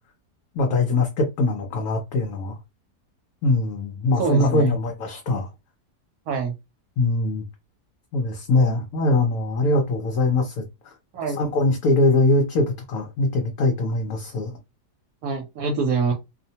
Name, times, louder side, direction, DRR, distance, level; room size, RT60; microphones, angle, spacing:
voice 1, 0.5-2.6 3.4-5.5 7.0-7.4 8.1-10.9 11.3-14.6, left 2 dB, 70° left, 1.0 m, -22 dB
voice 2, 4.2-4.7 6.3-6.5 11.1-11.4 15.2-16.1, right 4 dB, 70° right, 1.0 m, -25 dB
2.7 x 2.1 x 2.7 m
omnidirectional pair, 1.7 m